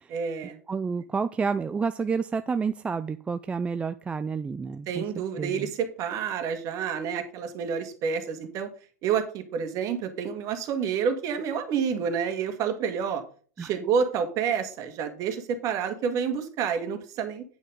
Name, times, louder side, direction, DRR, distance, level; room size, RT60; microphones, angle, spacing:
voice 1, 0.1-0.6 4.9-8.7 9.0-13.2 13.6-17.4, right 7 dB, 40° right, 1.9 m, -29 dB
voice 2, 0.7-5.0 5.4-5.7 13.6-13.7, right 5 dB, 15° right, 0.4 m, -29 dB
9.3 x 5.7 x 5.0 m
hypercardioid pair, 105°, 9 cm